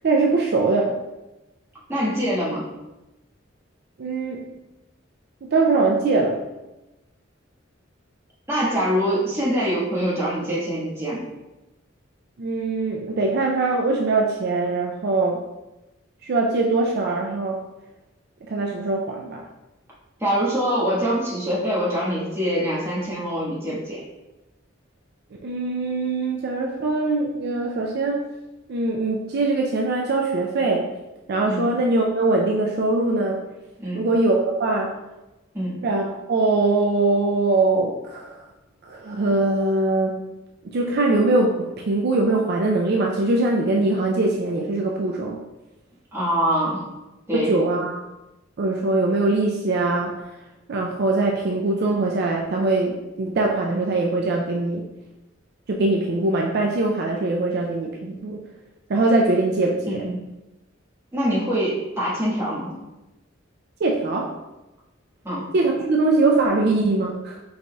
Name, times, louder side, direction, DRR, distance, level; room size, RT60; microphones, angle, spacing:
voice 1, 0.0-1.0 4.0-4.4 5.4-6.4 12.4-15.4 16.2-17.6 18.5-19.4 25.4-28.3 28.7-30.9 31.3-33.4 33.9-35.0 35.8-38.3 38.9-40.2 40.6-45.4 47.3-48.0 48.6-50.2 50.7-54.9 55.7-58.4 58.9-60.0 63.8-64.4 65.5-67.4, right 2 dB, 55° right, 0 dB, 0.4 m, -22 dB
voice 2, 1.9-2.7 8.5-11.3 20.2-24.0 31.4-31.6 33.8-34.0 35.5-35.7 46.1-46.8 47.3-47.5 59.8-60.2 61.1-62.8 65.2-65.5, equal, 15° right, -8 dB, 1.4 m, -24 dB
4.8 x 3.9 x 2.3 m, 1.0 s
head